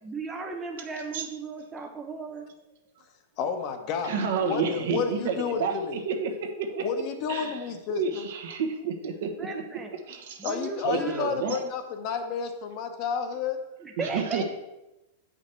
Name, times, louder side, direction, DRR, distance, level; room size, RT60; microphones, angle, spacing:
voice 1, 0.0-2.5 9.4-9.9 10.4-11.4 13.8-14.4, right 3 dB, 10° right, 2 dB, 0.5 m, -36 dB
voice 2, 3.4-6.0 6.8-8.3 10.4-13.6, left 6 dB, 35° left, 6 dB, 0.8 m, -31 dB
voice 3, 4.0-6.8 7.3-7.6 7.9-9.6 10.1-10.5 10.8-11.6 14.0-14.4, right 6 dB, 65° right, 5 dB, 1.1 m, -30 dB
7.8 x 5.2 x 4.4 m, 0.98 s
supercardioid pair, 160°, 0 cm